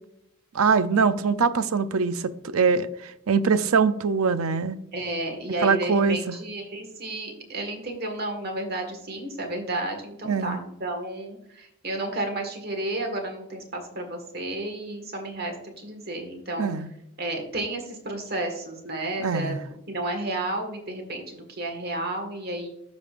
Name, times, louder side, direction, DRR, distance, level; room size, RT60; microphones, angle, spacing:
voice 1, 0.5-4.8 5.6-6.3 10.2-10.6 16.6-16.9 19.2-19.6, right 5 dB, 75° right, 0.5 m, -23 dB
voice 2, 4.9-16.8 17.2-19.6 19.9-22.7, right 2 dB, 45° right, 1.7 m, -32 dB
13.0 x 5.2 x 2.5 m
head